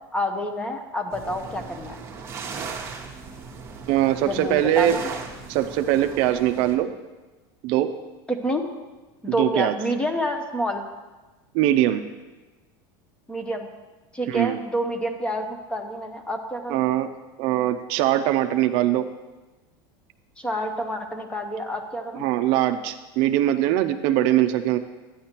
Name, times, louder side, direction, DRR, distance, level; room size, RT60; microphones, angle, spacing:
voice 1, 0.1-2.0 4.2-5.0 8.3-8.6 9.2-10.8 13.3-13.7 14.1-16.8 20.4-22.2, equal, 10° left, 5 dB, 0.7 m, -28 dB
sound 1, 1.1-6.8, right 5 dB, 20° right, 1.0 m, -38 dB
voice 2, 3.9-5.0 5.5-6.9 7.6-7.9 9.3-9.7 11.5-12.0 14.3-14.6 16.7-17.1 17.4-19.0 22.2-24.8, right 13 dB, 50° right, 8 dB, 0.4 m, -22 dB
11.0 x 9.7 x 2.9 m, 1.2 s
supercardioid pair, 155°, 12 cm